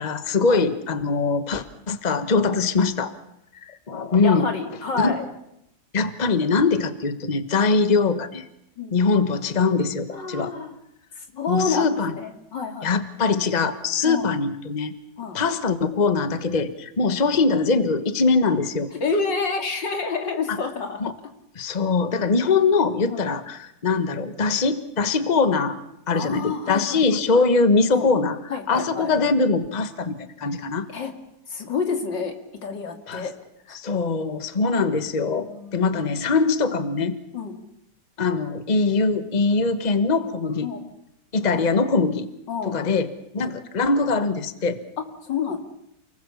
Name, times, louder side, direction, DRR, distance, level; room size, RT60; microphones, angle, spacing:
voice 1, 0.0-3.1 3.6-4.5 5.0-5.2 5.9-8.5 8.9-10.5 11.5-12.1 12.8-14.9 15.3-18.9 20.5-20.6 21.0-21.1 21.5-25.8 26.1-28.4 28.7-30.9 33.1-33.3 33.7-37.2 38.2-40.7 41.3-42.3 42.6-43.1 43.3-44.8, left 4 dB, 25° left, 11 dB, 1.2 m, -22 dB
voice 2, 4.2-5.3 8.8-9.0 10.1-10.8 11.3-13.0 14.0-14.3 15.2-15.4 17.0-17.1 19.0-21.1 23.1-23.3 26.1-27.4 27.9-28.1 28.5-29.1 30.9-31.1 31.5-32.3 32.6-33.3 33.7-33.8 35.4-35.9 37.3-37.6 40.6-40.8 41.5-41.9 42.5-42.8 43.4-43.5 45.0-45.6, left 5 dB, 90° left, 4 dB, 3.3 m, -29 dB
29.0 x 20.0 x 7.2 m, 0.81 s
omnidirectional pair, 1.9 m